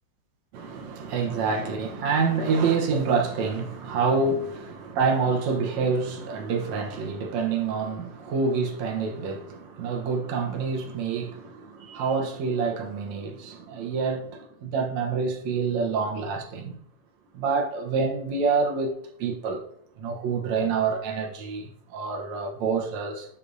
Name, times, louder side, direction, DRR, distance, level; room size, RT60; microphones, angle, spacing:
voice 1, 0.5-16.8 17.3-19.7 20.0-23.3, right 5 dB, 65° right, 2.0 m, -27 dB
10.0 x 6.8 x 2.7 m
omnidirectional pair, 3.9 m